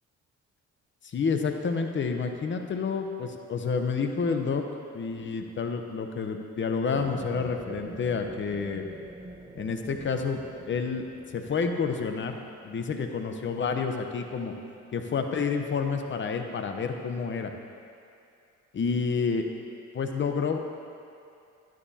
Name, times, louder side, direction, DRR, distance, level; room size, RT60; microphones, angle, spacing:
voice 1, 1.0-4.6 4.9-8.8 9.6-10.4 10.7-11.0 11.3-12.4 12.6-14.5 14.9-17.5 18.7-19.5 19.9-20.6, left 5 dB, 40° left, 5 dB, 0.8 m, -29 dB
sound 1, 6.9-14.2, right 2 dB, 15° right, 0.8 m, -46 dB
12.0 x 10.0 x 2.8 m, 2.5 s
cardioid pair, 90°, 30 cm